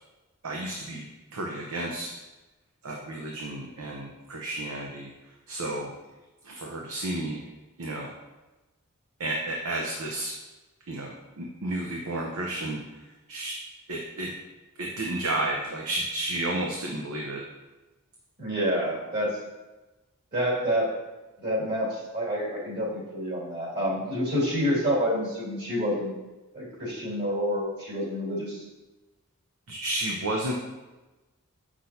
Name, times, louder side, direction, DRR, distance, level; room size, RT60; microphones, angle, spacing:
voice 1, 0.4-1.1 1.3-2.2 2.8-5.1 5.5-5.9 6.4-7.5 7.8-8.1 9.2-10.3 10.9-12.8 13.3-13.5 13.9-14.3 14.8-17.4 29.7-30.5, right 1 dB, 80° right, -1 dB, 0.8 m, -32 dB
voice 2, 18.4-19.4 20.3-20.9 21.4-26.1 26.5-28.6, equal, 50° right, -6 dB, 2.4 m, -28 dB
7.7 x 6.1 x 2.8 m, 1.1 s
head